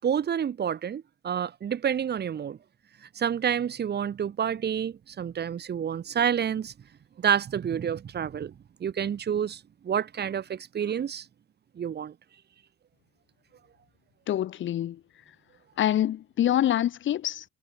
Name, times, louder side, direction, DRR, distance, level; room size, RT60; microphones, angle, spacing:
voice 1, 0.0-2.6 3.1-6.7 7.2-8.5 8.8-11.3 11.7-12.1, right 8 dB, 55° right, 5.0 m, -29 dB
voice 2, 14.3-15.0 15.8-17.4, left 11 dB, 75° left, 5.9 m, -25 dB
cardioid pair, 90°, 20 cm